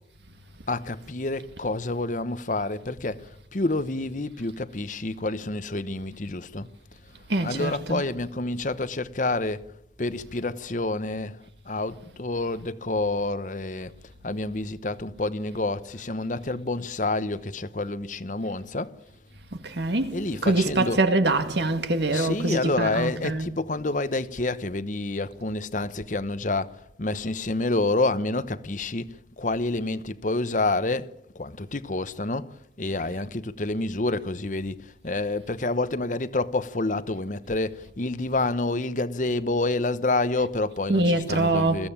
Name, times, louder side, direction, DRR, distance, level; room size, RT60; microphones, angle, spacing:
voice 1, 0.7-6.7 7.4-9.7 10.0-13.9 14.2-18.9 20.1-21.1 22.1-31.1 31.3-41.9, left 2 dB, 45° left, 0.9 m, -28 dB
voice 2, 7.3-8.0 19.5-23.5 40.9-41.9, right 2 dB, 75° right, 2.2 m, -24 dB
21.5 x 15.5 x 8.8 m
head